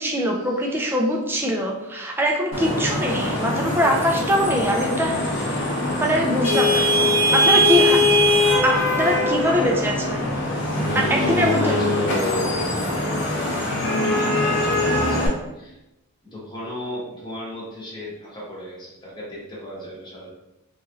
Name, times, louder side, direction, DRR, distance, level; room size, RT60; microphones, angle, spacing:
voice 1, 0.0-5.2 6.0-6.9 7.5-8.0 8.6-10.3 10.9-11.6, equal, 10° right, 0 dB, 0.3 m, -22 dB
Vehicle horn car horn honking / Traffic noise roadway noise, 2.5-15.3, left 1 dB, 55° left, 0.8 m, -21 dB
voice 2, 6.7-8.6 10.8-12.5 13.7-15.8 16.2-20.3, left 1 dB, 20° left, -6 dB, 0.9 m, -36 dB
2.9 x 2.4 x 2.7 m, 0.93 s
head